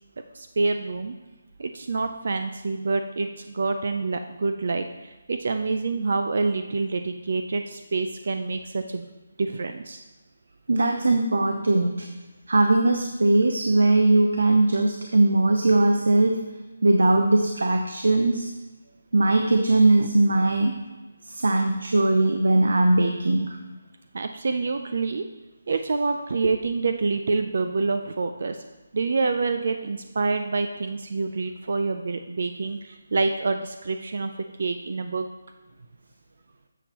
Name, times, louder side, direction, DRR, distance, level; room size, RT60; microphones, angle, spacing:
voice 1, 0.3-1.1 1.6-9.1 9.4-10.0 20.0-20.1 24.1-25.2 25.7-28.6 28.9-34.3 34.6-35.3, right 3 dB, 50° right, 7 dB, 0.4 m, -27 dB
voice 2, 10.7-12.1 12.5-16.5 16.8-18.5 19.1-20.7 21.2-23.6, right 2 dB, 85° right, 4 dB, 0.7 m, -20 dB
10.5 x 7.0 x 3.0 m, 1.2 s
hypercardioid pair, 170°, 0 cm